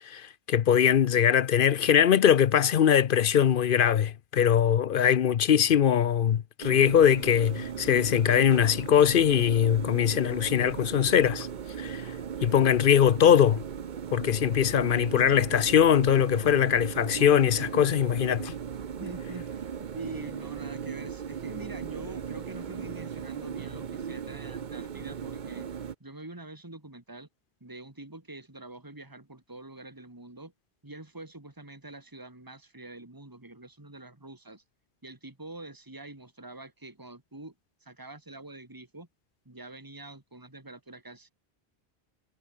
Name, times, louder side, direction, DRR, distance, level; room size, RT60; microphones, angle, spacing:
voice 1, 0.1-11.5 11.8-12.1 12.4-13.6 14.1-18.5, left 9 dB, 60° left, 0.8 m, -22 dB
sound 1, 6.6-25.9, right 7 dB, 50° right, 0.9 m, -37 dB
voice 2, 19.0-25.7 26.0-27.3 27.6-30.5 30.8-34.6 35.0-37.5 37.8-39.1 39.5-41.3, right 2 dB, 20° right, 2.5 m, -45 dB
omnidirectional pair, 1.1 m